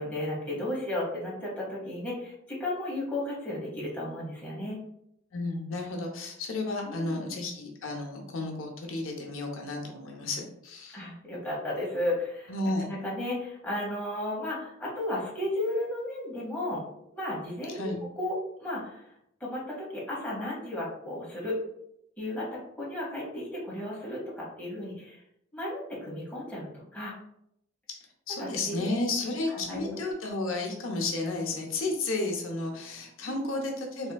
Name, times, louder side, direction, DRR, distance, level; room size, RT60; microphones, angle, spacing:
voice 1, 0.0-4.8 6.8-7.2 10.9-12.5 12.8-16.8 17.1-17.9 18.2-19.0 19.4-21.6 22.2-25.2 25.5-27.1 28.4-28.8 29.5-30.0 33.3-33.5, left 1 dB, 10° left, -6 dB, 0.9 m, -34 dB
voice 2, 5.3-11.0 12.5-12.9 17.7-18.0 28.3-34.1, left 2 dB, 85° left, 2 dB, 0.6 m, -32 dB
3.4 x 2.7 x 2.2 m, 0.75 s
head